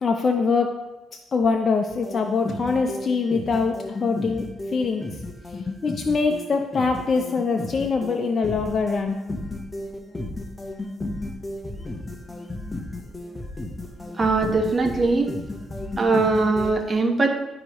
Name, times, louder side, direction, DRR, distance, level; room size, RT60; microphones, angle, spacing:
voice 1, 0.0-0.8 1.3-4.4 4.7-5.0 5.5-9.2, left 4 dB, 45° left, 3 dB, 0.6 m, -23 dB
sound 1, 1.9-16.7, left 2 dB, 15° left, 1.0 m, -34 dB
voice 2, 14.2-15.3 16.0-17.5, right 3 dB, 30° right, 3 dB, 1.1 m, -21 dB
11.5 x 4.7 x 3.0 m, 1.0 s
cardioid pair, 90°, 0 cm